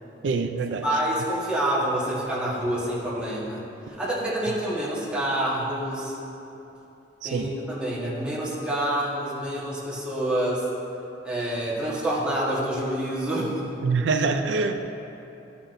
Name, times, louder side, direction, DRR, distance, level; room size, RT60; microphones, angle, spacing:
voice 1, 0.2-0.8 7.2-7.5 13.8-14.9, right 4 dB, 85° right, 6 dB, 0.4 m, -25 dB
voice 2, 0.8-3.6 4.0-6.1 7.2-10.6 11.2-13.7, right 1 dB, 5° right, -8 dB, 1.4 m, -27 dB
11.0 x 5.8 x 2.6 m, 2.9 s
head